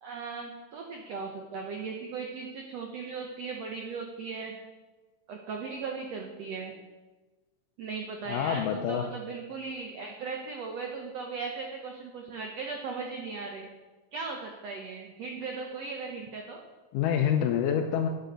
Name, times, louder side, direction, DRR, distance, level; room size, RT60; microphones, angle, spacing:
voice 1, 0.0-4.5 5.3-6.7 7.8-13.7 14.1-16.6, right 4 dB, 80° right, 2 dB, 1.5 m, -37 dB
voice 2, 8.3-9.0 16.9-18.1, left 9 dB, 80° left, 3 dB, 2.0 m, -26 dB
9.0 x 7.8 x 6.4 m, 1.2 s
omnidirectional pair, 4.2 m